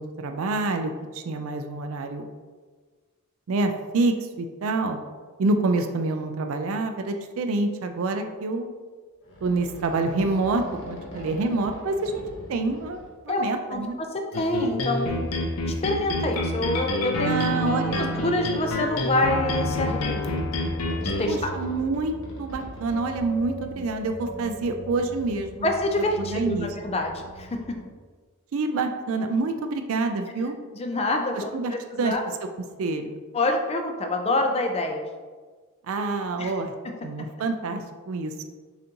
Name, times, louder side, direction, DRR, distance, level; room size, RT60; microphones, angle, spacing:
voice 1, 0.0-2.3 3.5-5.0 5.4-8.7 9.4-14.0 17.2-18.1 21.2-25.7 26.2-26.7 28.5-30.6 31.3-32.1 32.8-33.2 35.9-36.7 37.0-38.3, right 3 dB, 65° right, 6 dB, 0.4 m, -27 dB
sound 1, 8.0-8.1 9.2-13.1 13.9-14.0 14.6-16.0 17.1-23.2, equal, 60° left, 1.2 m, -42 dB
voice 2, 13.3-15.3 15.6-17.8 18.1-20.3 21.0-21.5 25.6-27.8 30.7-32.2 33.3-35.0 36.4-36.5, left 1 dB, 25° left, 3 dB, 0.5 m, -27 dB
sound 2, 14.3-21.3, left 1 dB, 80° left, 0.6 m, -28 dB
sound 3, 19.5-27.9, right 1 dB, 25° right, 0.8 m, -40 dB
7.0 x 2.6 x 2.9 m, 1.4 s
head